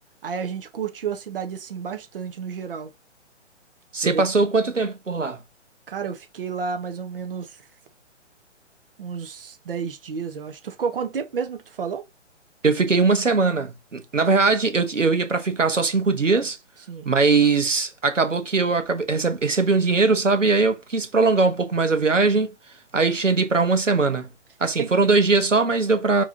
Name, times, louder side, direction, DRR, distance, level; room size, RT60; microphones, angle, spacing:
voice 1, 0.2-2.9 4.0-4.2 5.9-7.6 9.0-12.0 16.9-17.1 24.8-24.9, right 6 dB, 50° right, 1.1 m, -31 dB
voice 2, 3.9-5.4 12.6-16.6 17.0-22.5 22.9-24.3 24.6-26.2, right 4 dB, 85° right, 1.2 m, -20 dB
4.9 x 3.2 x 2.7 m
figure-of-eight pair, 135°, 36 cm